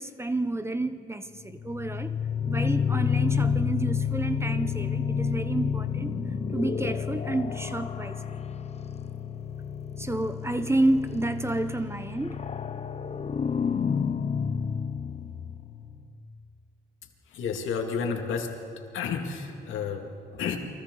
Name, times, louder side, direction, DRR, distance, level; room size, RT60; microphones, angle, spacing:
voice 1, 0.0-2.1 2.5-6.2 6.5-8.4 10.0-12.4, right 2 dB, 15° right, 11 dB, 0.9 m, -30 dB
sound 1, 1.5-16.1, left 7 dB, 30° left, 0.8 m, -30 dB
voice 2, 17.3-18.5 18.9-20.6, left 6 dB, 80° left, 3 dB, 2.3 m, -31 dB
29.5 x 23.0 x 4.0 m, 2.6 s
cardioid pair, 90°, 20 cm